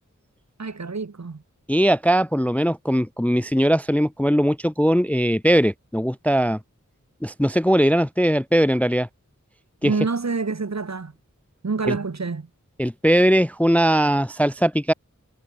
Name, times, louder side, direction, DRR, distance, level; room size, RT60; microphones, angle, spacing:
voice 1, 0.6-1.4 9.8-11.1 11.6-12.5, right 4 dB, 60° right, 1.2 m, -27 dB
voice 2, 1.7-6.6 7.2-9.1 9.8-9.9 11.9-12.0 12.8-14.9, equal, 5° left, 0.4 m, -20 dB
wide cardioid pair, 50°, 31 cm